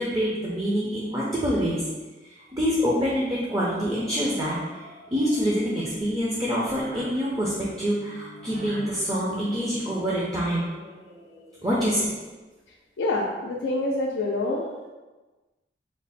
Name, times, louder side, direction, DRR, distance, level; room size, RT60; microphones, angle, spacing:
voice 1, 0.0-1.8 2.3-10.7 11.6-12.1, equal, 20° right, -6 dB, 0.5 m, -26 dB
sound 1, 3.2-12.3, left 1 dB, 60° right, 0.7 m, -46 dB
voice 2, 13.0-14.7, left 2 dB, 85° left, -3 dB, 0.4 m, -26 dB
3.2 x 2.0 x 4.0 m, 1.2 s
head